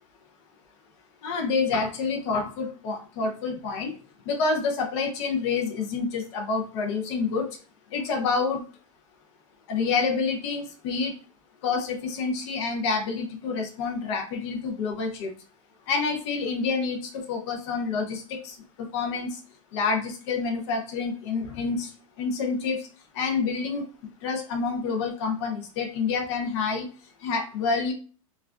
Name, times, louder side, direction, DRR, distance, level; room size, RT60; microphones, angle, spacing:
voice 1, 1.2-3.9 4.3-7.6 7.9-8.7 9.7-11.2 11.6-15.3 15.9-19.4 19.7-22.9 23.1-23.9 24.2-26.9 27.2-27.9, left 4 dB, 55° left, 2 dB, 0.6 m, -28 dB
3.2 x 2.3 x 2.4 m, 0.38 s
supercardioid pair, 145°, 18 cm